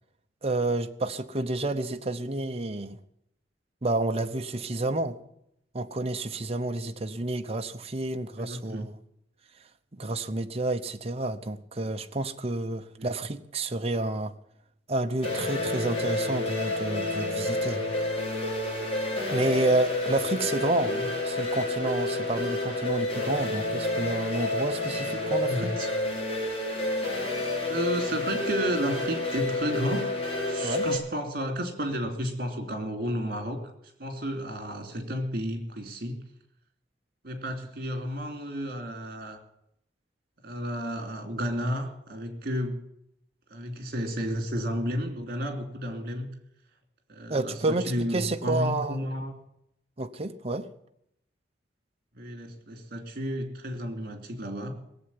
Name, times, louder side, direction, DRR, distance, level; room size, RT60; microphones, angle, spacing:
voice 1, 0.4-3.0 3.8-5.2 5.7-8.9 10.0-14.3 14.9-17.8 19.3-20.9 21.2-25.7 30.6-30.8 47.3-49.0 50.0-50.7, right 2 dB, 35° right, 0.9 m, -29 dB
voice 2, 8.4-8.9 13.0-13.1 20.8-21.1 25.4-25.9 27.7-30.1 30.5-33.7 34.0-36.2 37.2-39.4 40.4-42.8 43.5-46.3 47.1-49.3 52.1-54.8, equal, 55° right, 3.1 m, -32 dB
sound 1, 15.2-31.0, left 2 dB, 35° left, 5.5 m, -29 dB
18.5 x 7.8 x 9.8 m
head